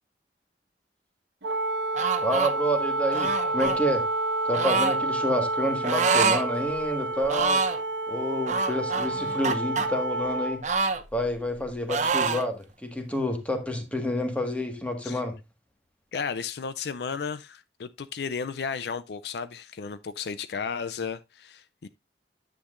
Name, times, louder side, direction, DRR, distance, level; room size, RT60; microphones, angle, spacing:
Wind instrument woodwind instrument, 1.4-10.6, right 2 dB, 80° right, 1.2 m, -29 dB
sound 1, 1.9-2.5 3.1-3.8 4.5-5.0 5.8-6.4 6.8-6.9 7.2-7.8 8.5-9.9 10.6-11.6 11.9-12.5, right 4 dB, 40° right, 0.8 m, -26 dB
voice 1, 2.2-4.1 4.4-7.6 8.1-10.6 11.1-15.4, equal, 10° left, 1.6 m, -29 dB
voice 2, 16.1-21.9, left 6 dB, 65° left, 0.4 m, -34 dB
10.0 x 8.4 x 2.5 m
head